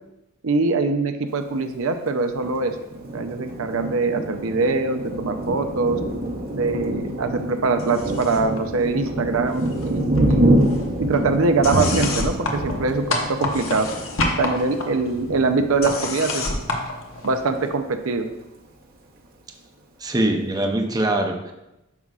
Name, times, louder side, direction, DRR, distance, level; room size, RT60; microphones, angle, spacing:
voice 1, 0.4-2.8 3.1-6.0 6.5-10.7 11.0-13.9 14.4-16.5 17.2-18.3, right 3 dB, 75° right, 7 dB, 0.6 m, -23 dB
Thunder, 2.4-16.7 17.2-17.4 17.7-18.3, right 1 dB, 45° right, 0.9 m, -26 dB
sound 1, 7.8-8.6 8.8-9.9 10.1-17.7, left 2 dB, 70° left, 1.1 m, -29 dB
voice 2, 20.0-21.5, right 1 dB, 20° right, 3 dB, 0.6 m, -22 dB
9.3 x 6.2 x 2.4 m, 0.92 s
head